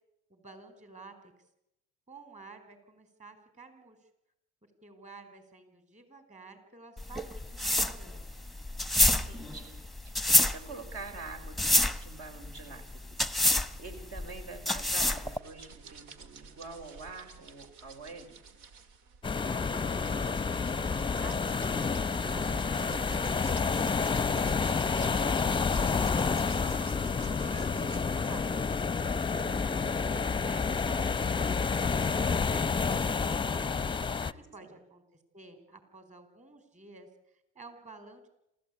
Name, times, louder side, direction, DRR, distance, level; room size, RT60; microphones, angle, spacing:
voice 1, 0.3-1.1 2.1-4.1 4.8-8.2 19.6-20.8 21.1-22.5 23.3-28.6 29.1-33.3 34.2-35.0 35.3-38.3, right 3 dB, 25° right, 8 dB, 4.7 m, -52 dB
sound 1, 7.0-15.4, left 1 dB, ahead, 1.1 m, -27 dB
voice 2, 9.1-10.1 10.4-13.3 13.8-18.4 34.2-34.7, right 3 dB, 55° right, 5 dB, 4.4 m, -46 dB
sound 2, 15.3-28.0, right 5 dB, 70° right, 2.1 m, -50 dB
sound 3, 19.2-34.3, left 5 dB, 15° left, 0.8 m, -29 dB
27.5 x 14.0 x 8.5 m, 0.86 s
supercardioid pair, 80°, 29 cm